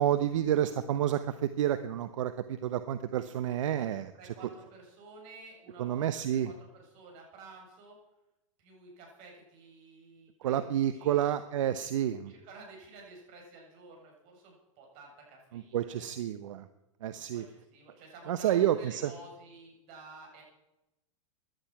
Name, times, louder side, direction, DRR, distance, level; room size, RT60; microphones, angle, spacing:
voice 1, 0.0-4.1 5.8-6.5 10.4-12.3 15.5-16.7 17.0-17.5 18.3-19.1, right 11 dB, 70° right, 12 dB, 0.9 m, -29 dB
voice 2, 4.2-8.0 8.6-11.3 12.3-16.1 17.1-20.4, right 3 dB, 45° right, 0 dB, 7.7 m, -52 dB
17.0 x 11.5 x 5.9 m, 0.94 s
hypercardioid pair, 130°, 17 cm